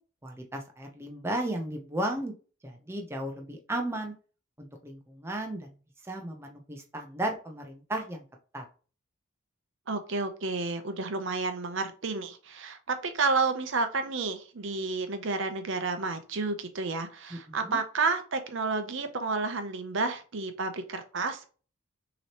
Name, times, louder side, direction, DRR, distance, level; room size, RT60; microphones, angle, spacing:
voice 1, 0.2-2.3 2.6-4.1 4.6-5.7 6.0-8.2 8.5-8.6 17.3-17.8, right 1 dB, 10° right, 0.6 m, -35 dB
voice 2, 9.9-21.5, right 4 dB, 60° right, 0.6 m, -31 dB
6.0 x 3.0 x 2.9 m
head